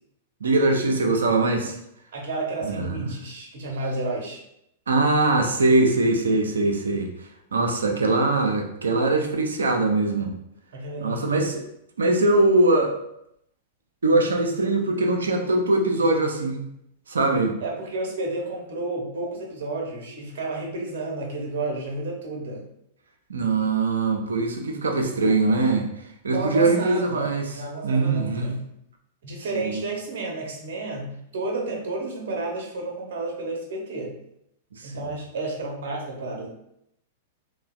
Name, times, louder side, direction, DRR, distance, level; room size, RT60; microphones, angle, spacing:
voice 1, 0.4-1.8 2.6-3.2 4.9-10.3 11.0-11.6 12.0-12.9 14.0-16.7 17.1-17.6 23.3-28.5 29.5-29.8 34.7-35.0, right 2 dB, 75° right, 3 dB, 0.4 m, -22 dB
voice 2, 2.1-4.4 10.7-11.5 17.6-22.6 26.2-28.6 29.2-34.1 34.8-36.5, right 2 dB, 60° right, 0 dB, 0.8 m, -31 dB
3.1 x 2.1 x 2.3 m, 0.78 s
figure-of-eight pair, 100°, 0 cm